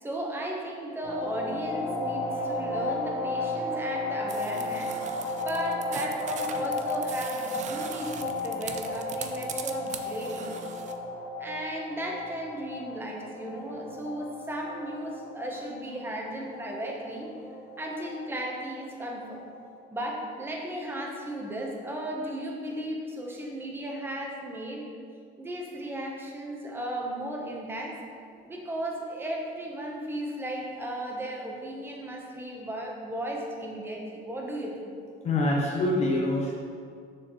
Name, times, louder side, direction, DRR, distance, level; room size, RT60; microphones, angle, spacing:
voice 1, 0.0-5.0 5.4-10.5 11.4-17.3 17.8-19.5 19.9-24.9 25.4-28.0 28.4-34.9, right 1 dB, 10° right, -1 dB, 0.9 m, -35 dB
sound 1, 1.0-19.6, left 2 dB, 70° left, 1.6 m, -34 dB
sound 2, 4.3-10.9, right 7 dB, 40° right, 0.4 m, -41 dB
voice 2, 35.2-36.5, left 1 dB, 35° left, -3 dB, 0.8 m, -25 dB
6.5 x 6.4 x 3.1 m, 2.3 s
cardioid pair, 145°, 19 cm